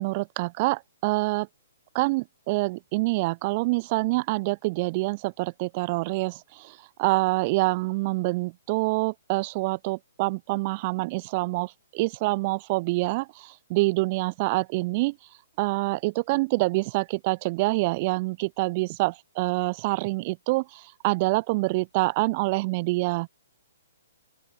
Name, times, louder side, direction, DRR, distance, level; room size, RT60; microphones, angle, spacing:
voice 1, 0.0-1.5 2.0-15.2 15.6-23.3, right 24 dB, 35° right, 1.8 m, -26 dB
open air
hypercardioid pair, 140°, 0 cm